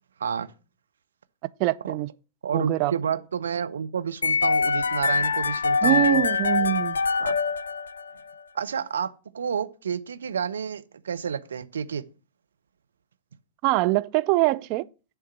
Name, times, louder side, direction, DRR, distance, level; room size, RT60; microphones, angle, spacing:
voice 1, 0.2-0.5 1.8-2.0 2.4-6.2 7.2-7.3 8.5-12.0, right 7 dB, 75° right, 0.7 m, -30 dB
voice 2, 1.6-2.1 2.5-2.9 5.8-7.0 13.6-14.9, right 17 dB, 45° right, 0.5 m, -23 dB
sound 1, 4.2-8.3, left 5 dB, 75° left, 0.3 m, -24 dB
10.0 x 3.5 x 7.0 m
figure-of-eight pair, 100°, 0 cm